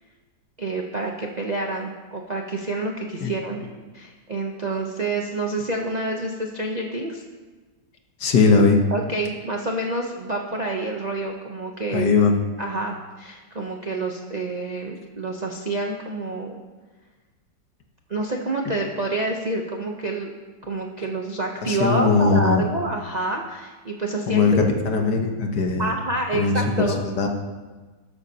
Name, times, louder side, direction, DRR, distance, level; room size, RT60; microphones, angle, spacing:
voice 1, 0.6-3.6 3.9-7.2 8.9-12.1 12.6-16.5 18.1-20.3 20.7-24.7 25.8-27.0, right 2 dB, 65° right, 0 dB, 0.4 m, -28 dB
voice 2, 8.2-8.8 11.9-12.3 21.7-22.6 24.3-25.9 26.3-27.3, left 4 dB, 60° left, 3 dB, 1.8 m, -19 dB
13.0 x 12.5 x 2.9 m, 1.3 s
omnidirectional pair, 2.2 m